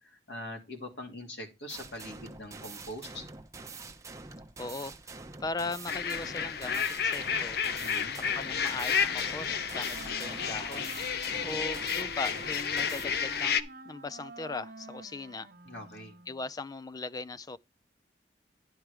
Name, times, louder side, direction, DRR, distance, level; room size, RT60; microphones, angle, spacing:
voice 1, 0.0-3.2 7.8-8.2 15.6-16.1, left 1 dB, 85° left, 2.8 m, -43 dB
sound 1, 1.7-13.2, right 3 dB, 20° right, 0.8 m, -46 dB
voice 2, 4.6-5.0 5.4-7.6 8.1-10.9 11.4-13.6 13.8-15.5 16.3-17.6, left 3 dB, 20° left, 0.4 m, -39 dB
sound 2, 5.9-13.6, left 7 dB, 60° left, 0.7 m, -31 dB
Wind instrument woodwind instrument, 9.0-16.5, right 3 dB, 55° right, 0.9 m, -48 dB
10.0 x 4.6 x 4.9 m
head